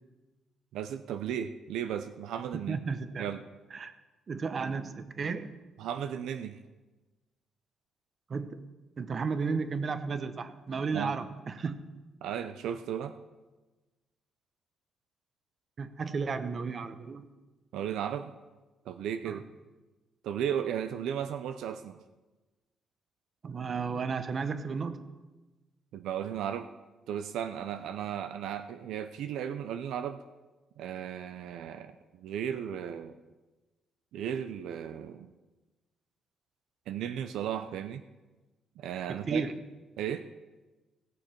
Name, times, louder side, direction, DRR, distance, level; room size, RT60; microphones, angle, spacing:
voice 1, 0.7-2.8 3.2-3.4 5.8-6.6 10.9-11.2 12.2-13.2 17.7-18.3 18.9-19.4 20.2-22.0 25.9-26.7 27.1-30.2 30.8-33.2 34.1-35.3 36.9-38.0 38.8-39.5 40.0-40.2, right 9 dB, 85° right, 10 dB, 0.5 m, -35 dB
voice 2, 2.5-3.3 3.7-3.9 4.3-5.5 8.3-8.6 9.0-11.8 15.8-17.3 19.2-19.4 23.4-25.0 39.1-39.5, right 5 dB, 45° right, 11 dB, 0.9 m, -33 dB
16.5 x 6.7 x 5.8 m, 1.2 s
cardioid pair, 90°, 0 cm